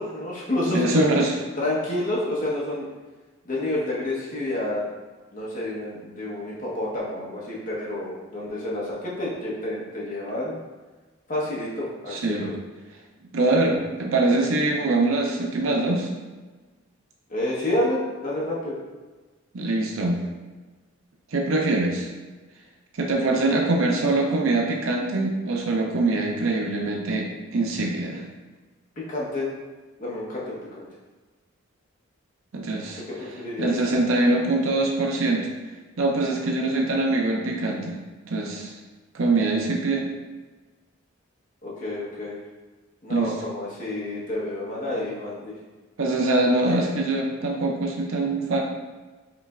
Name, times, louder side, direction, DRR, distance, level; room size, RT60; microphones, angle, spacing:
voice 1, 0.0-1.1 1.6-2.9 3.4-4.8 5.3-10.6 11.3-12.5 17.3-18.7 29.0-29.5 30.0-30.9 33.2-33.7 41.6-42.4 43.0-45.5, left 1 dB, 40° left, -6 dB, 1.0 m, -29 dB
voice 2, 0.7-1.4 12.1-12.5 13.3-16.1 19.5-20.2 21.3-22.1 22.9-28.2 32.5-33.0 33.6-35.5 36.0-38.0 38.3-38.7 39.1-40.0 43.1-43.3 46.0-48.6, right 2 dB, 75° right, 0 dB, 0.5 m, -23 dB
5.0 x 3.3 x 2.4 m, 1.3 s
head